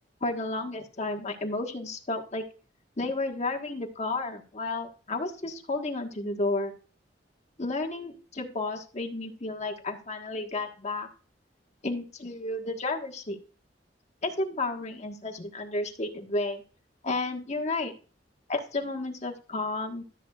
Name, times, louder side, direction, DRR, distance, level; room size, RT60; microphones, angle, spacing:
voice 1, 0.2-2.4 3.0-6.7 7.6-11.1 11.8-13.4 14.2-16.6 17.0-17.9 18.5-20.0, left 2 dB, 40° left, 3 dB, 1.5 m, -32 dB
13.5 x 8.1 x 2.4 m, 0.37 s
head